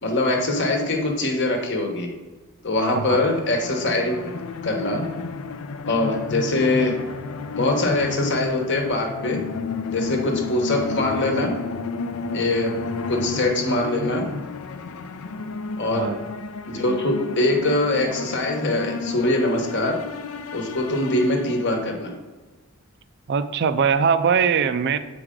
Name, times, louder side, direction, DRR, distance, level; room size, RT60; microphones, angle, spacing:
voice 1, 0.0-2.1 2.6-4.2 4.6-5.0 5.9-6.9 7.5-9.4 9.9-11.5 12.3-12.7 13.1-14.2 15.8-16.1 16.7-20.0 20.5-22.1, left 2 dB, 55° left, 3 dB, 1.1 m, -23 dB
sound 1, 3.3-22.0, left 4 dB, 70° left, 0.4 m, -32 dB
voice 2, 23.3-25.0, right 6 dB, 50° right, 11 dB, 0.4 m, -21 dB
7.6 x 4.7 x 3.7 m, 1.3 s
head